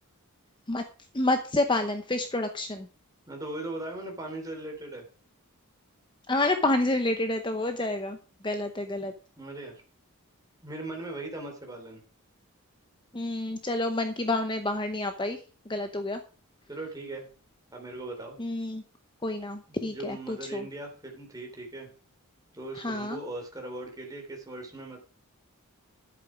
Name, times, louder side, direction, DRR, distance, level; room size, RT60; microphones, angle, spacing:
voice 1, 1.1-2.9 6.3-8.2 8.4-9.1 13.1-15.4 15.7-16.2 18.4-18.8 19.2-20.7 22.7-23.2, left 2 dB, 20° left, 7 dB, 0.8 m, -29 dB
voice 2, 3.3-5.0 9.4-9.8 10.6-12.0 16.7-17.2 17.7-18.4 19.7-21.9 22.5-25.0, right 2 dB, 15° right, 1 dB, 3.4 m, -39 dB
11.0 x 8.3 x 5.1 m, 0.37 s
head